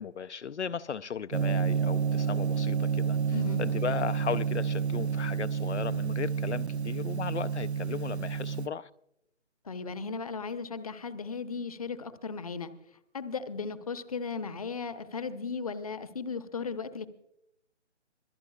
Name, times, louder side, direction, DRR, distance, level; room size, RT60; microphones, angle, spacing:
voice 1, 0.0-3.2 3.6-8.9, left 7 dB, 70° left, 0.6 m, -36 dB
Gong, 1.3-8.7, right 7 dB, 65° right, 0.9 m, -29 dB
voice 2, 3.3-3.6 9.6-12.7 13.1-17.1, left 5 dB, 30° left, 0.8 m, -36 dB
26.0 x 17.0 x 2.3 m
figure-of-eight pair, 160°, 36 cm